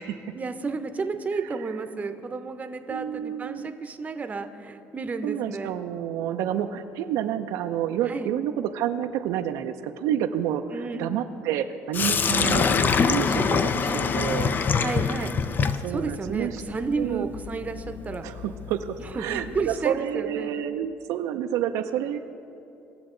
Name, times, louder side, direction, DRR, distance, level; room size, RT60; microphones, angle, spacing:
voice 1, 0.3-5.7 8.1-8.3 10.7-11.1 13.4-14.1 14.8-15.3 15.9-18.2 19.0-20.5, right 4 dB, 30° right, 8 dB, 0.8 m, -32 dB
voice 2, 2.9-3.8 5.2-14.6 15.8-16.6 17.0-17.3 18.2-22.2, right 10 dB, 85° right, 7 dB, 0.5 m, -29 dB
Sink (filling or washing), 11.9-19.9, left 5 dB, 35° left, 0.5 m, -26 dB
19.0 x 6.9 x 3.8 m, 2.7 s
cardioid pair, 100°, 5 cm